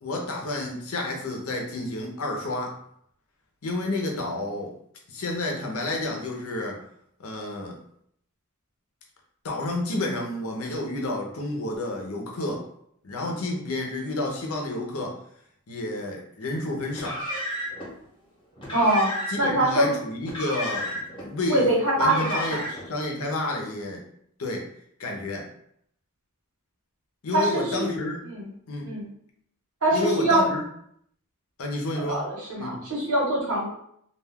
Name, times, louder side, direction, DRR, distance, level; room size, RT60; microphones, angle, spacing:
voice 1, 0.0-2.8 3.6-4.7 5.1-6.8 7.2-7.8 9.4-12.6 13.0-15.2 15.7-17.2 19.3-21.7 22.0-24.0 24.4-24.6 25.0-25.4 27.2-28.2 28.7-28.9 29.9-30.6 31.6-32.3 32.6-32.8, left 2 dB, 75° left, 0 dB, 0.7 m, -30 dB
Car, 16.9-17.9 18.6-19.5 20.2-21.3 21.9-22.9, equal, 25° left, 0.8 m, -32 dB
voice 2, 18.7-19.9 21.5-22.6 27.3-27.9 28.2-28.5 28.8-29.1 29.8-30.5 31.9-33.7, right 1 dB, 80° right, -3 dB, 1.2 m, -24 dB
2.4 x 2.3 x 3.5 m, 0.70 s
head